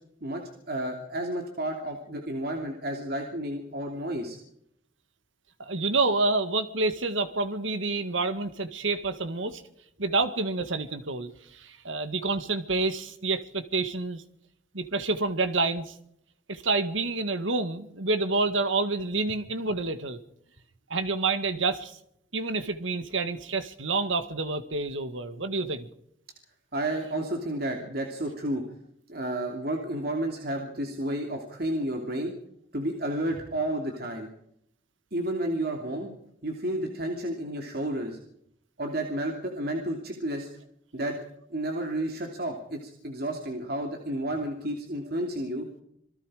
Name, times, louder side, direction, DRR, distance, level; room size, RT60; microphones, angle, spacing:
voice 1, 0.2-4.4 26.7-28.6 29.1-32.3 32.7-34.3 35.1-36.1 36.4-38.2 38.8-40.5 40.9-41.2 41.5-45.7, right 1 dB, 50° right, 2 dB, 2.9 m, -31 dB
voice 2, 5.6-9.6 10.0-14.2 14.7-15.9 16.5-20.2 20.9-22.0 22.3-25.9, right 3 dB, 85° right, 10 dB, 1.9 m, -28 dB
27.0 x 20.0 x 5.0 m, 0.73 s
head